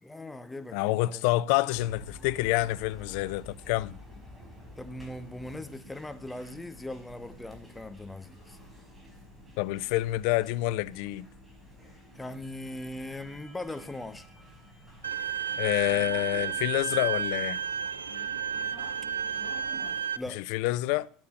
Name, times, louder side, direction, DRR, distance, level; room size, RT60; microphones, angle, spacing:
voice 1, 0.0-1.2 4.8-8.6 12.1-14.3 20.1-20.4, left 1 dB, 10° left, 1.4 m, -40 dB
voice 2, 0.7-4.0 9.6-11.2 15.6-17.6 20.3-21.1, left 18 dB, 60° left, 0.6 m, -27 dB
sound 1, 1.7-20.0, left 1 dB, 10° right, 5.1 m, -50 dB
Bowed string instrument, 15.0-20.2, right 8 dB, 90° right, 0.6 m, -32 dB
13.5 x 8.6 x 6.9 m
hypercardioid pair, 80°, 0 cm